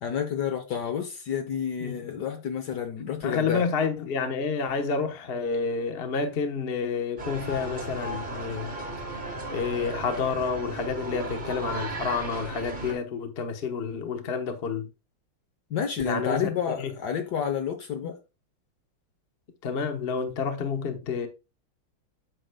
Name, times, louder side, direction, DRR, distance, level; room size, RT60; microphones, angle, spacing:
voice 1, 0.0-3.7 15.7-18.2, left 8 dB, 60° left, 1.2 m, -30 dB
voice 2, 1.8-2.1 3.2-8.7 9.1-9.2 9.5-14.9 16.0-16.9 18.0-18.1 19.6-21.3, left 5 dB, 40° left, 0.9 m, -29 dB
sound 1, 7.2-12.9, right 2 dB, 30° right, 1.1 m, -35 dB
8.8 x 6.4 x 2.2 m
omnidirectional pair, 2.3 m